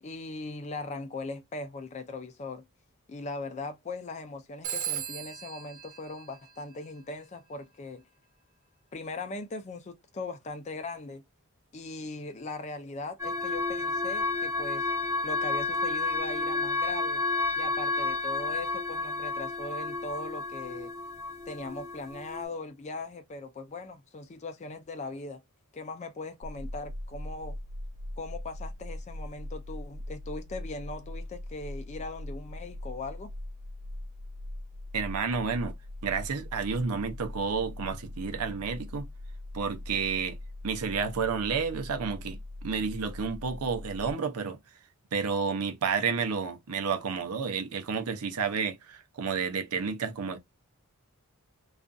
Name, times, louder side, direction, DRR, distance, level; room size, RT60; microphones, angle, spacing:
voice 1, 0.0-2.6 3.1-8.0 8.9-11.2 11.7-14.9 15.2-17.2 17.6-20.9 21.5-25.4 25.7-27.6 28.2-33.3, left 3 dB, 30° left, 0.4 m, -39 dB
Telephone, 4.6-7.1, right 9 dB, 65° right, 1.1 m, -38 dB
sound 1, 13.2-22.5, left 3 dB, 10° right, 0.6 m, -31 dB
sound 2, 26.4-44.1, left 1 dB, 90° left, 0.6 m, -41 dB
voice 2, 34.9-35.8 36.0-39.1 39.5-40.4 40.6-44.6 45.1-50.4, right 5 dB, 85° right, 0.6 m, -31 dB
2.5 x 2.4 x 2.3 m
head